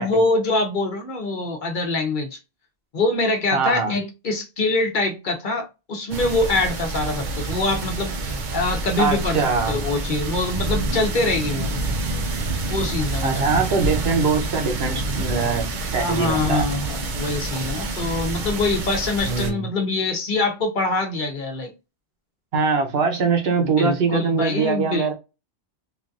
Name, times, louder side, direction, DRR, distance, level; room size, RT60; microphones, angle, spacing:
voice 1, 0.0-2.4 2.9-11.7 12.7-13.4 15.9-21.7 23.6-25.1, left 2 dB, 55° left, 0.9 m, -24 dB
voice 2, 3.5-3.9 9.0-9.8 13.2-15.7 15.9-16.6 19.2-19.7 22.5-25.1, right 5 dB, 70° right, 1.1 m, -22 dB
sound 1, 6.1-19.5, right 2 dB, 55° right, 0.7 m, -27 dB
3.2 x 2.5 x 2.5 m
omnidirectional pair, 1.1 m